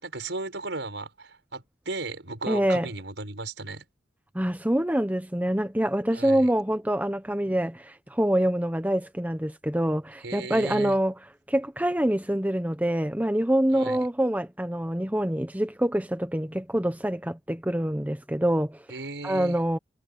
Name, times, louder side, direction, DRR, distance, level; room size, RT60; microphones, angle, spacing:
voice 1, 0.0-3.8 6.1-6.5 10.2-11.0 13.7-14.0 18.9-19.6, right 3 dB, 80° right, 6.0 m, -35 dB
voice 2, 2.5-2.9 4.3-11.1 11.5-18.8 19.2-19.8, right 1 dB, 10° right, 1.1 m, -25 dB
head